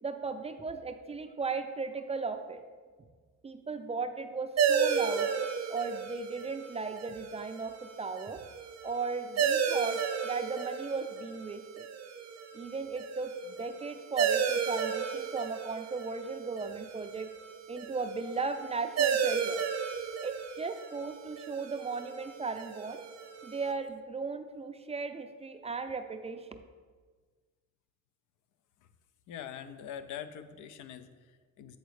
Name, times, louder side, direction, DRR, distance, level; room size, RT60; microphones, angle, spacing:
voice 1, 0.0-2.6 3.4-5.3 5.7-8.4 8.8-11.9 12.5-17.3 17.7-19.6 20.2-23.0 23.4-26.6, right 4 dB, 20° right, 8 dB, 0.3 m, -36 dB
sound 1, 4.6-23.7, right 7 dB, 60° right, 0.6 m, -34 dB
voice 2, 29.3-31.8, left 9 dB, 80° left, 11 dB, 0.5 m, -44 dB
7.9 x 4.1 x 3.2 m, 1.5 s
cardioid pair, 90°, 30 cm